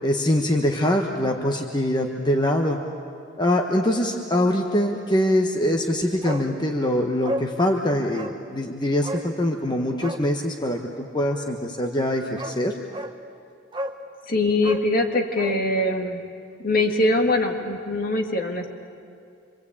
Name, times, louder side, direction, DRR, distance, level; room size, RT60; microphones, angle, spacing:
voice 1, 0.0-2.8 3.4-12.7, left 1 dB, 25° left, 2 dB, 1.3 m, -23 dB
Bark, 6.2-6.5 6.8-6.9 7.2-7.5 8.1-8.4 9.0-9.3 9.9-10.3 11.9-12.0 12.4-12.6 12.9-13.2 13.7-14.0 14.6-15.6 15.9-16.0, equal, 25° right, 1.1 m, -32 dB
voice 2, 14.3-16.2 16.6-18.7, left 2 dB, 50° left, 3 dB, 2.2 m, -22 dB
27.0 x 24.5 x 8.6 m, 2.4 s
head